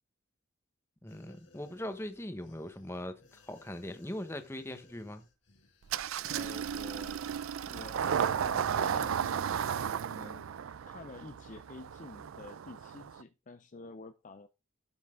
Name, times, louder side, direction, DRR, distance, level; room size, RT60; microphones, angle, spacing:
sound 1, 1.0-8.4 8.7-8.9, left 3 dB, 60° left, 2.2 m, -63 dB
voice 1, 1.0-5.3, left 1 dB, 10° left, 1.0 m, -41 dB
Engine starting, 5.9-13.2, right 8 dB, 80° right, 0.4 m, -34 dB
voice 2, 6.3-7.2 7.5-14.5, left 3 dB, 35° left, 0.5 m, -50 dB
12.0 x 5.7 x 3.7 m
head